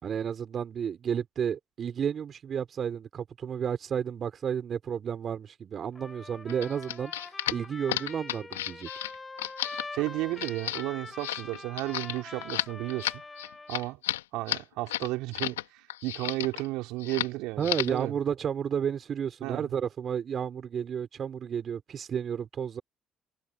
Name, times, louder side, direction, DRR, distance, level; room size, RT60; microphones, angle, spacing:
voice 1, 0.0-7.1 7.5-8.9 17.6-22.8, right 8 dB, 50° right, 4.4 m, -32 dB
Trumpet, 5.9-14.0, left 3 dB, 25° left, 3.8 m, -44 dB
sound 1, 6.5-15.6 15.9-16.7 17.0-17.3 17.6-18.0, left 14 dB, 85° left, 2.2 m, -33 dB
voice 2, 9.9-13.2 13.7-14.0 14.3-18.1 19.4-19.7, right 20 dB, 70° right, 4.8 m, -33 dB
figure-of-eight pair, 45°, 0 cm